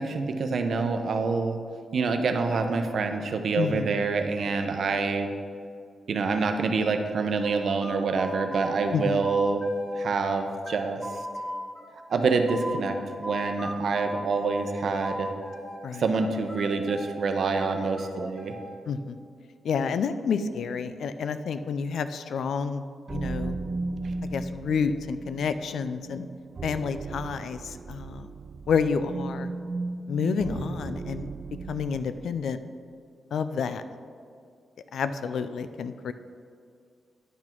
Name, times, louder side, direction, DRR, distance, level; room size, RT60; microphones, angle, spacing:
voice 1, 0.0-1.6 1.9-5.3 6.1-9.6 10.0-11.0 12.1-15.3 16.0-18.5, right 4 dB, 65° right, 6 dB, 0.8 m, -26 dB
voice 2, 3.6-3.9 8.9-9.2 15.8-16.0 18.9-19.2 19.6-23.5 24.3-26.3 26.6-28.3 28.7-29.5 30.1-31.3 31.7-32.6 33.3-33.8 34.9-36.1, left 6 dB, 75° left, 11 dB, 0.4 m, -29 dB
sound 1, 7.4-10.0 10.3-12.8 13.2-15.8 16.1-18.8, equal, 5° left, 1.3 m, -38 dB
sound 2, 23.1-32.3, right 3 dB, 45° right, 0.3 m, -36 dB
10.0 x 6.1 x 4.5 m, 2.2 s
cardioid pair, 90°, 0 cm